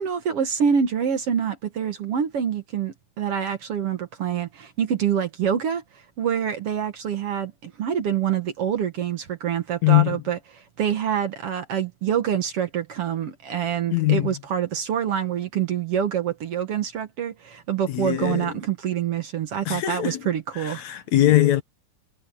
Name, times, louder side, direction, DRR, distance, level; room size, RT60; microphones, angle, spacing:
voice 1, 0.0-20.8, right 8 dB, 55° right, 2.0 m, -26 dB
voice 2, 9.8-10.2 13.9-14.4 17.9-18.5 19.7-20.2 20.5-21.6, left 15 dB, 70° left, 2.1 m, -21 dB
omnidirectional pair, 3.7 m